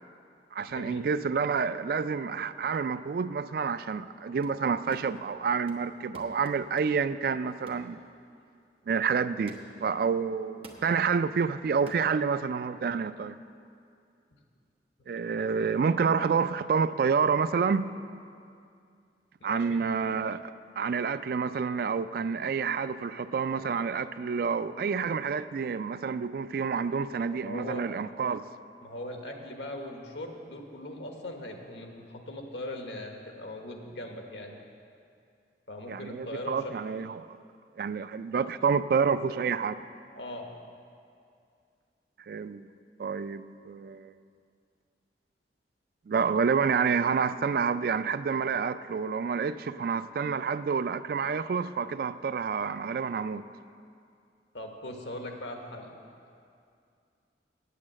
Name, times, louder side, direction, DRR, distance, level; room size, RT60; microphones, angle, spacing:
voice 1, 0.5-8.0 8.9-13.4 15.1-17.9 19.4-28.4 35.9-37.3 37.8-39.7 42.3-42.7 43.0-44.1 46.1-53.4, right 5 dB, 55° right, 13 dB, 0.3 m, -28 dB
sound 1, 4.4-4.7 4.9-5.3 5.7-7.1 7.7-7.9 8.4-8.6 9.5-9.9 10.6-11.0 11.9-12.1, right 2 dB, 30° right, 0.9 m, -50 dB
voice 2, 19.4-19.8 27.0-27.9 28.8-34.6 35.7-36.8 40.1-40.5 54.5-55.9, left 1 dB, 85° left, 3 dB, 1.3 m, -40 dB
8.7 x 8.4 x 7.5 m, 2.4 s
head